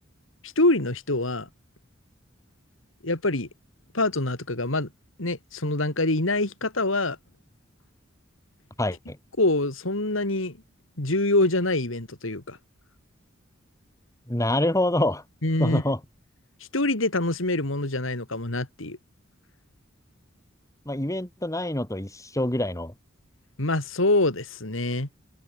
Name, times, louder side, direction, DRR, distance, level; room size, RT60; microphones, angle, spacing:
voice 1, 0.4-1.5 3.0-3.5 3.9-4.9 5.2-7.2 9.4-10.6 11.0-12.6 15.4-15.8 16.7-19.0 23.6-25.1, left 2 dB, 75° left, 3.0 m, -25 dB
voice 2, 8.8-9.2 14.3-15.2 15.6-16.0 20.8-22.9, left 1 dB, 15° left, 3.5 m, -26 dB
head